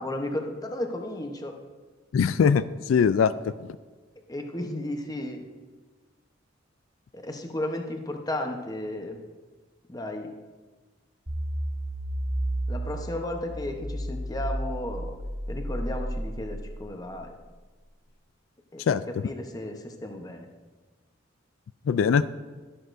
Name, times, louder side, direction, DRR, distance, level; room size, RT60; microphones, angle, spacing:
voice 1, 0.0-1.6 4.3-5.5 7.1-9.2 9.9-10.3 12.7-15.1 15.5-17.3 18.7-20.5, left 1 dB, 20° left, 4 dB, 0.9 m, -34 dB
voice 2, 2.1-3.7 18.9-19.0 21.9-22.2, left 6 dB, 90° left, 15 dB, 0.3 m, -22 dB
sound 1, 11.3-17.5, right 1 dB, 40° right, 1.9 m, -32 dB
12.5 x 11.0 x 2.6 m, 1.4 s
head